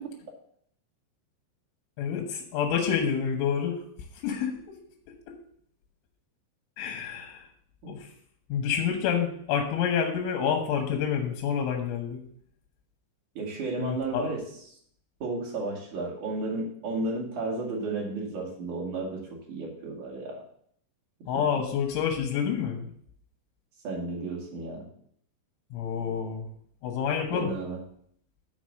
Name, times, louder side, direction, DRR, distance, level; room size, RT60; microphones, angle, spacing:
voice 1, 2.0-3.8 4.2-4.6 5.3-5.4 6.8-7.5 7.9-8.1 8.5-12.2 13.8-14.3 21.3-22.9 25.7-26.5 26.8-27.5, left 7 dB, 85° left, 2 dB, 3.7 m, -28 dB
voice 2, 13.3-14.4 15.2-20.4 21.3-21.4 23.8-24.9 27.3-27.8, right 2 dB, 50° right, -2 dB, 2.9 m, -33 dB
6.9 x 6.2 x 6.2 m, 0.65 s
omnidirectional pair, 5.4 m